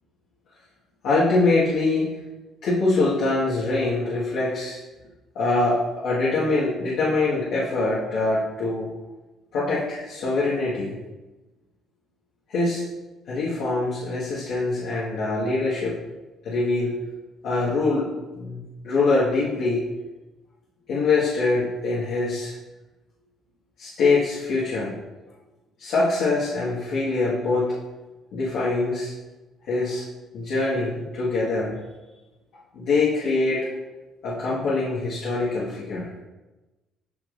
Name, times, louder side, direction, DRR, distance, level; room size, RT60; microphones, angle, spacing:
voice 1, 1.0-2.1 2.6-4.8 5.3-8.9 9.5-10.9 12.5-12.8 13.3-15.9 16.4-16.9 17.4-18.1 18.3-19.8 20.9-22.5 23.8-24.9 25.8-27.7 28.3-29.1 29.7-30.0 30.3-31.8 32.7-33.7 34.2-36.1, left 3 dB, 70° left, -8 dB, 1.6 m, -24 dB
8.4 x 6.0 x 2.6 m, 1.1 s
supercardioid pair, 80°, 0 cm